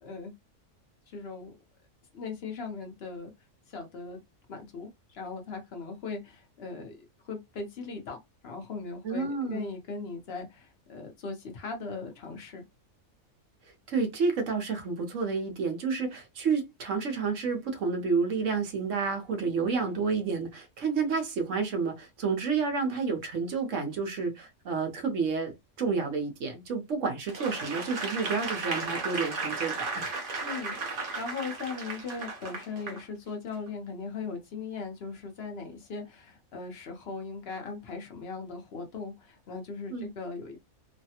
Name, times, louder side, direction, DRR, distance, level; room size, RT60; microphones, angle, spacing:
voice 1, 0.0-0.3 1.1-1.5 2.1-3.3 3.7-4.2 4.5-12.6 30.4-40.6, left 4 dB, 50° left, 1.0 m, -39 dB
voice 2, 9.0-9.7 13.9-30.1 39.9-40.1, right 5 dB, 65° right, 1.2 m, -30 dB
Applause / Crowd, 27.3-33.0 33.5-33.7, right 3 dB, 45° right, 0.9 m, -35 dB
3.2 x 2.2 x 2.8 m
omnidirectional pair, 1.4 m